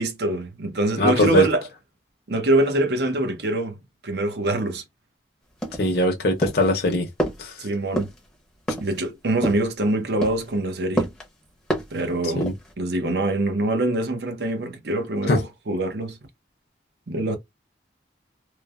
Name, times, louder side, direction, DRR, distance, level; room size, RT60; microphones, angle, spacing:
voice 1, 0.0-1.6 2.3-3.8 4.0-4.8 7.6-8.1 8.8-11.1 11.9-12.5 12.8-16.2 17.1-17.4, right 2 dB, 60° right, 0.6 m, -24 dB
voice 2, 1.0-1.5 5.8-7.1 7.4-7.5 12.4-12.5 15.3-15.4, left 1 dB, 55° left, 0.6 m, -21 dB
sound 1, 5.6-6.0 6.4-6.7 7.2-7.4 8.0-8.2 8.7-9.0 9.4-9.7 10.2-10.5 11.0-11.3 11.7-12.0 12.4-12.7, right 1 dB, 5° left, 0.6 m, -27 dB
3.1 x 2.0 x 2.3 m
head